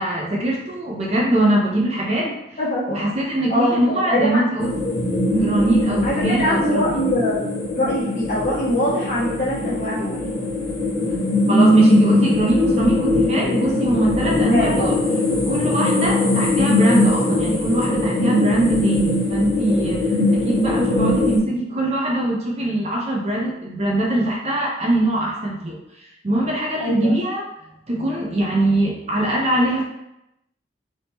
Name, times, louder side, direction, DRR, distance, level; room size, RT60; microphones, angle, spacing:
voice 1, 0.0-2.3 2.9-4.7 5.3-7.0 11.5-14.9 15.5-20.0 20.3-25.8 26.2-27.4 27.9-29.8, right 1 dB, 35° right, -2 dB, 0.5 m, -22 dB
voice 2, 2.6-3.0 3.5-4.4 6.0-7.5 7.7-10.3 14.5-14.9 26.8-27.1, left 1 dB, 40° left, -7 dB, 1.1 m, -23 dB
sound 1, 4.6-21.4, left 1 dB, 20° left, 0.6 m, -21 dB
3.4 x 2.8 x 2.8 m, 0.86 s
head